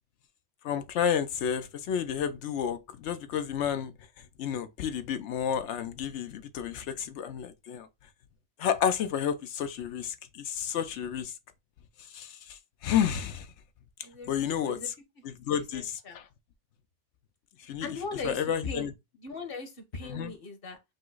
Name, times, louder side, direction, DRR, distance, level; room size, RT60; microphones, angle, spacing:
voice 1, 0.6-3.9 4.4-7.9 8.6-11.3 12.1-12.4 12.8-13.5 14.3-14.8 15.5-16.0 17.7-17.9 18.2-18.9 20.1-20.3, left 8 dB, 85° left, 1.0 m, -30 dB
voice 2, 14.0-14.9 15.7-16.2 17.8-18.9 19.2-20.8, left 3 dB, 55° left, 1.1 m, -39 dB
5.4 x 2.0 x 3.8 m
omnidirectional pair, 1.2 m